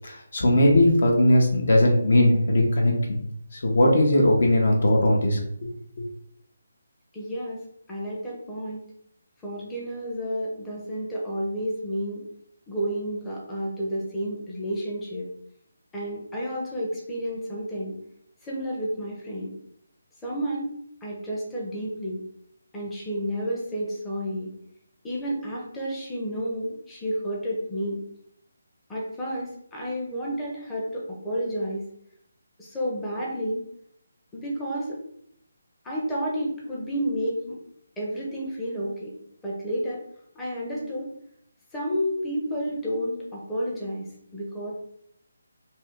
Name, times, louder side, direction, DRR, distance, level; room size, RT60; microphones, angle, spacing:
voice 1, 0.0-3.2 3.6-5.4, left 1 dB, 55° left, 0 dB, 0.8 m, -19 dB
voice 2, 7.1-7.6 7.9-8.8 9.4-12.2 12.7-15.3 15.9-17.9 18.4-19.5 20.2-20.7 21.0-22.2 22.7-24.5 25.0-28.0 28.9-31.8 32.6-33.6 34.3-35.0 35.8-37.6 38.0-39.2 39.4-40.0 40.3-41.1 41.7-44.1 44.3-44.7, equal, 10° left, -6 dB, 0.7 m, -30 dB
2.8 x 2.7 x 3.5 m, 0.71 s
figure-of-eight pair, 150°, 0 cm